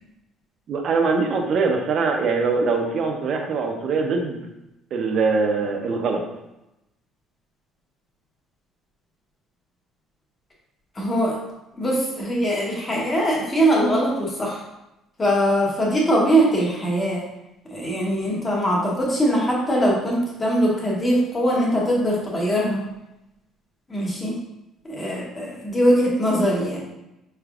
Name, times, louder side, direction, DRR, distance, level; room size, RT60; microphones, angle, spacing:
voice 1, 0.7-4.4 4.9-6.2, right 4 dB, 45° right, 3 dB, 0.6 m, -22 dB
voice 2, 10.9-11.4 11.8-14.6 15.2-17.2 17.7-22.8 23.9-24.4 24.8-26.8, equal, 20° left, -3 dB, 0.9 m, -21 dB
4.6 x 3.3 x 2.4 m, 0.92 s
cardioid pair, 160°, 0 cm